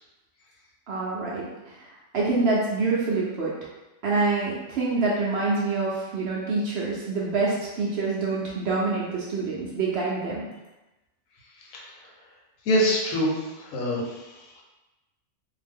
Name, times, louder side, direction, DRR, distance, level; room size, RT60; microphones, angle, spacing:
voice 1, 0.9-1.9 2.1-3.5 4.0-10.5, right 3 dB, 60° right, -5 dB, 0.7 m, -26 dB
voice 2, 12.7-14.5, equal, 80° left, -3 dB, 1.1 m, -25 dB
2.7 x 2.1 x 3.4 m, 1.0 s
omnidirectional pair, 1.4 m